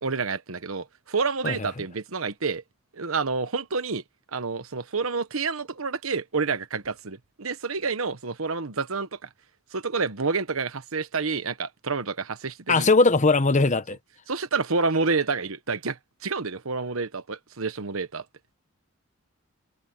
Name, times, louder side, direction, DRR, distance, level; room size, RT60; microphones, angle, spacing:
voice 1, 0.0-2.6 2.9-4.0 4.3-9.3 9.7-12.9 14.3-18.2, right 4 dB, 80° right, 1.2 m, -29 dB
voice 2, 12.7-14.0, left 3 dB, 35° left, 1.1 m, -19 dB
head